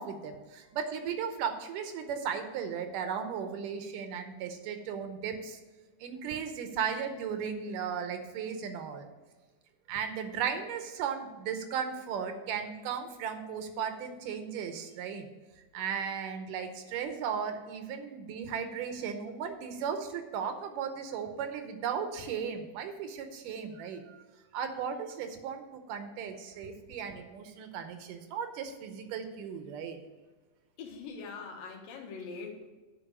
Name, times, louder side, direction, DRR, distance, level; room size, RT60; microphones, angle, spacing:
voice 1, 0.0-5.6 6.0-9.1 9.9-15.3 15.7-24.2 24.5-30.0, right 7 dB, 75° right, 7 dB, 2.3 m, -36 dB
voice 2, 30.8-32.7, left 4 dB, 85° left, 2 dB, 3.0 m, -42 dB
10.0 x 4.5 x 7.2 m, 1.2 s
omnidirectional pair, 4.0 m